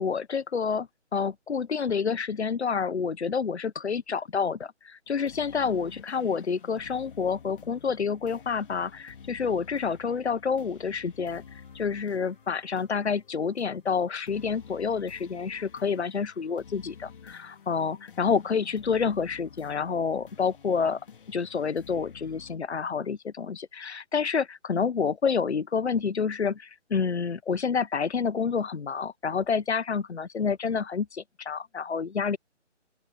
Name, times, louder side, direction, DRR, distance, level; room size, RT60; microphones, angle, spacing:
voice 1, 0.0-11.4 11.7-21.0 21.3-32.4, left 6 dB, 60° left, 1.0 m, -28 dB
sound 1, 5.1-22.6, left 7 dB, 45° left, 2.4 m, -50 dB
open air
figure-of-eight pair, 145°, 37 cm